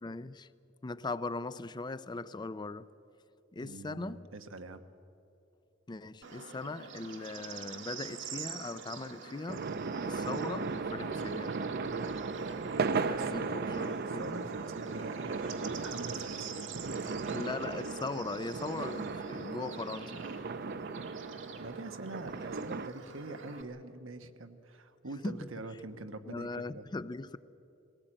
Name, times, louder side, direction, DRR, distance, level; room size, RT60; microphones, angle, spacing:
voice 1, 0.0-0.5 0.8-2.9 3.5-4.2 5.9-9.7 10.0-11.5 13.0-14.5 17.3-20.3 25.2-25.5 26.3-27.4, left 3 dB, 20° left, 0.4 m, -39 dB
voice 2, 3.6-4.8 13.2-13.7 14.1-17.2 21.6-26.8, right 2 dB, 90° right, 1.1 m, -45 dB
Bird / Insect, 6.2-23.6, right 5 dB, 70° right, 1.7 m, -46 dB
sound 1, 9.5-22.9, right 4 dB, 50° right, 0.6 m, -36 dB
19.5 x 17.0 x 8.7 m
head